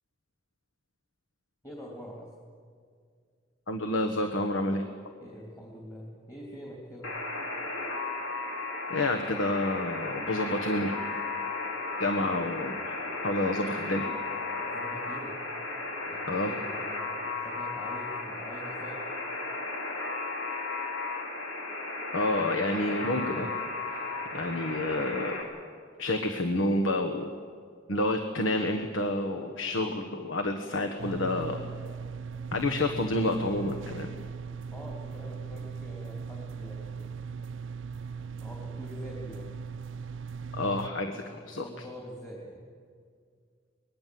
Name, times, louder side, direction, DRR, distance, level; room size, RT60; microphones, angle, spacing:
voice 1, 1.6-2.3 5.2-7.1 12.2-12.3 14.6-15.4 16.0-19.0 34.7-37.2 38.1-39.6 41.1-41.2 41.6-42.7, equal, 15° left, -2 dB, 2.9 m, -45 dB
voice 2, 3.7-4.8 8.9-11.0 12.0-13.0 13.2-14.1 16.2-16.6 22.1-23.6 23.9-25.4 26.0-27.3 27.9-31.6 32.5-34.1 40.5-41.8, left 1 dB, 75° left, 4 dB, 1.5 m, -29 dB
Alarm, 7.0-25.4, left 3 dB, 90° left, 3.8 m, -35 dB
sound 1, 31.0-40.9, right 5 dB, 70° right, 0.6 m, -39 dB
24.0 x 20.5 x 7.8 m, 2.1 s
head